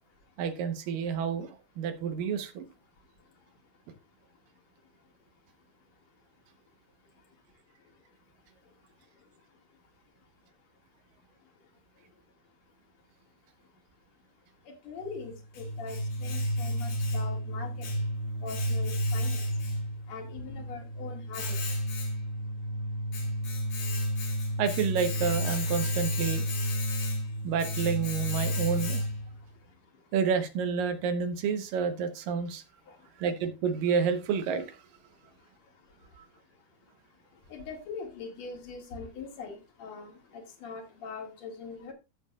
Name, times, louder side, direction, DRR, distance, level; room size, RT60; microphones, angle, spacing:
voice 1, 0.4-2.6 24.6-26.4 27.4-29.0 30.1-32.6 33.2-34.8, right 6 dB, 70° right, 8 dB, 2.4 m, -29 dB
voice 2, 14.7-17.9 18.4-19.5 20.1-21.8 32.9-33.0 37.5-41.9, left 5 dB, 50° left, 2 dB, 2.8 m, -42 dB
Domestic sounds home sounds, 15.0-29.4, equal, 65° left, 4.3 m, -31 dB
14.5 x 7.0 x 2.3 m, 0.26 s
omnidirectional pair, 4.6 m